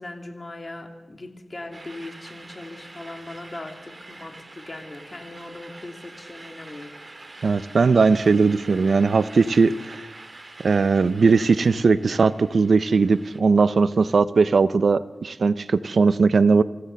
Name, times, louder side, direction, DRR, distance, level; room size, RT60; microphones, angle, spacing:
voice 1, 0.0-7.0, left 2 dB, 40° left, 4 dB, 3.0 m, -39 dB
sound 1, 1.7-13.4, right 2 dB, 40° right, 2.1 m, -45 dB
voice 2, 7.4-10.1 10.6-16.6, right 4 dB, 75° right, 15 dB, 0.7 m, -19 dB
26.0 x 15.0 x 6.7 m, 1.1 s
cardioid pair, 60°, 0 cm